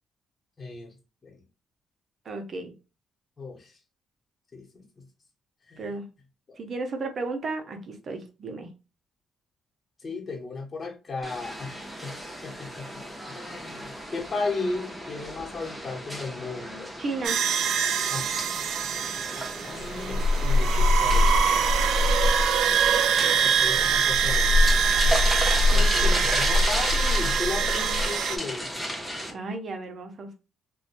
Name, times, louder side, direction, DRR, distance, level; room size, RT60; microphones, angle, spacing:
voice 1, 0.6-0.9 1.2-1.4 3.4-3.8 4.5-4.8 5.7-5.9 10.0-12.2 12.4-16.9 18.1-18.2 19.4-22.1 23.4-24.5 25.0-25.1 25.7-28.7, left 3 dB, 35° left, 1.0 m, -35 dB
voice 2, 2.2-2.7 5.8-6.0 6.6-8.7 17.0-17.4 25.7-26.3 29.3-30.3, right 3 dB, 50° right, 0.7 m, -34 dB
sound 1, 11.2-29.3, equal, ahead, 0.7 m, -34 dB
sound 2, 17.2-28.4, right 2 dB, 75° right, 0.3 m, -22 dB
3.0 x 2.2 x 2.5 m
cardioid pair, 90°, 0 cm